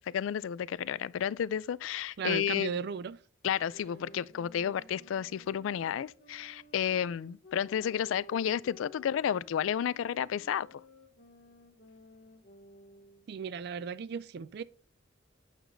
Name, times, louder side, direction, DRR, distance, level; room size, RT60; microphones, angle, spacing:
voice 1, 0.1-2.7 3.4-10.7, left 9 dB, 85° left, 0.3 m, -31 dB
voice 2, 2.2-3.2 13.3-14.6, right 6 dB, 55° right, 0.4 m, -36 dB
sound 1, 3.7-13.4, left 2 dB, 60° left, 1.1 m, -55 dB
9.0 x 6.7 x 2.6 m
head